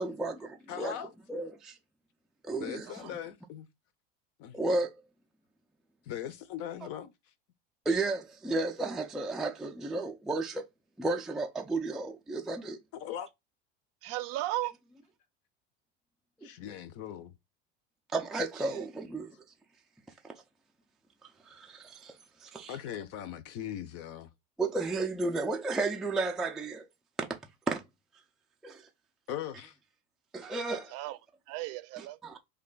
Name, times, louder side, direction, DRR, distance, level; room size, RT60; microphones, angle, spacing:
voice 1, 0.0-0.9 1.3-1.8 2.4-2.9 4.5-4.9 7.9-10.6 11.0-12.8 16.4-16.5 18.1-19.3 20.2-20.3 21.5-22.8 24.6-26.9 27.7-27.8 28.6-28.8 30.3-30.9 32.0-32.4, right 3 dB, ahead, 0.3 m, -33 dB
voice 2, 0.7-1.1 2.6-3.7 4.4-4.6 6.1-7.1 13.0-13.3 16.4-17.3 22.7-24.3 29.3-29.8, left 10 dB, 50° left, 0.6 m, -39 dB
voice 3, 14.0-14.7 18.6-18.8 30.9-31.2 31.5-32.2, right 16 dB, 50° right, 0.5 m, -36 dB
3.2 x 2.3 x 3.7 m
supercardioid pair, 120°, 31 cm